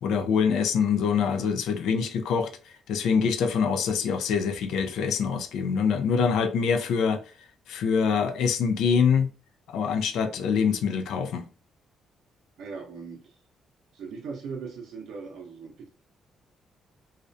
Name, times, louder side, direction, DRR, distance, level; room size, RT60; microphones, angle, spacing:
voice 1, 0.0-2.5 2.9-7.2 7.7-9.3 9.7-11.5, left 6 dB, 80° left, 0.3 m, -24 dB
voice 2, 12.6-13.4 13.9-15.9, right 5 dB, 80° right, 0.6 m, -39 dB
2.3 x 2.1 x 2.5 m
cardioid pair, 90°, 0 cm